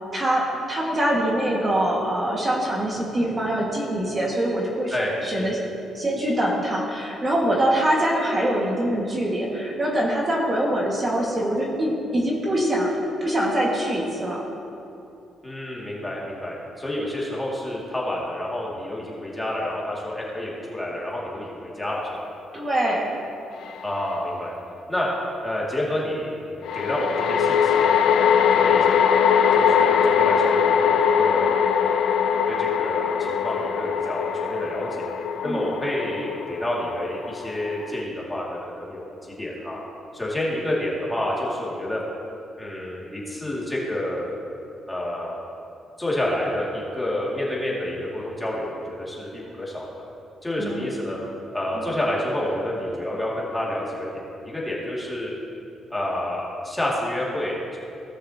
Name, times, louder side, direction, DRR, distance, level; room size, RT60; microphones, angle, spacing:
voice 1, 0.1-5.6 5.9-12.9 13.2-14.4 22.5-23.1 35.4-35.7 50.6-50.8 51.7-51.8, right 1 dB, 30° right, -3 dB, 1.9 m, -24 dB
voice 2, 4.9-5.5 15.4-22.2 23.8-24.5 24.9-25.1 25.4-29.0 29.5-31.5 32.5-35.0 35.4-39.8 40.1-42.0 42.6-44.3 44.9-45.4 46.0-50.0 50.4-51.2 51.5-55.3 55.9-57.8, left 1 dB, 10° left, -5 dB, 2.4 m, -29 dB
sound 1, 23.7-23.8 26.6-38.0, left 7 dB, 75° left, 0.5 m, -21 dB
17.0 x 6.6 x 2.9 m, 2.7 s
cardioid pair, 90°, 0 cm